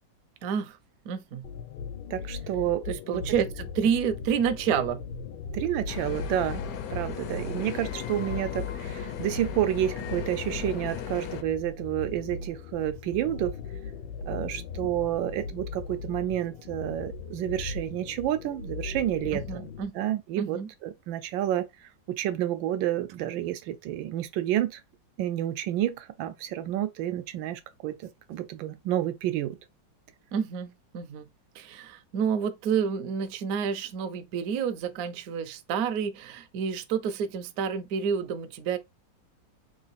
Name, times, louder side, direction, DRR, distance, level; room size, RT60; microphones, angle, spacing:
voice 1, 0.4-0.8 1.1-1.5 2.9-5.0 19.3-19.9 20.4-20.7 30.3-31.2 31.6-38.8, right 7 dB, 70° right, 0.9 m, -29 dB
sound 1, 1.4-19.9, left 4 dB, 85° left, 1.5 m, -38 dB
voice 2, 2.1-3.2 5.5-6.6 6.9-13.5 14.3-19.7 19.9-21.6 22.2-24.8 25.2-28.0 28.3-29.6, right 12 dB, 90° right, 1.4 m, -30 dB
sound 2, 5.9-11.4, left 9 dB, 70° left, 0.9 m, -36 dB
3.7 x 2.4 x 4.0 m
omnidirectional pair, 2.0 m